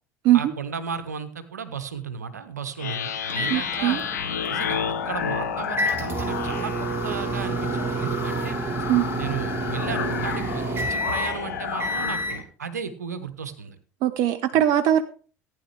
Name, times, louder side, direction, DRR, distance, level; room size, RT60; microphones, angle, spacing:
voice 1, 0.3-4.0 4.5-8.6 9.2-13.8 14.5-14.6, right 6 dB, 80° right, 11 dB, 1.0 m, -34 dB
sound 1, 2.8-12.3, left 8 dB, 75° left, 1.1 m, -31 dB
sound 2, 3.3-12.4, right 2 dB, 25° right, 2.8 m, -30 dB
voice 2, 3.5-4.0 8.9-9.1 14.0-15.0, right 12 dB, 55° right, 11 dB, 0.6 m, -20 dB
15.0 x 9.5 x 3.4 m, 0.41 s
figure-of-eight pair, 65°, 9 cm